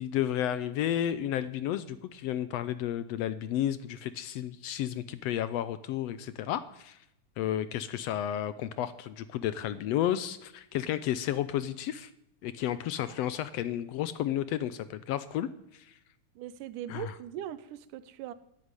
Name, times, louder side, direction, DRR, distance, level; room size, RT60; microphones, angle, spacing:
voice 1, 0.0-7.0 7.4-12.1 12.4-15.9 16.9-17.1, left 11 dB, 80° left, 14 dB, 1.5 m, -32 dB
voice 2, 16.4-18.3, right 11 dB, 80° right, 15 dB, 2.4 m, -40 dB
12.0 x 10.5 x 9.7 m, 0.80 s
omnidirectional pair, 3.6 m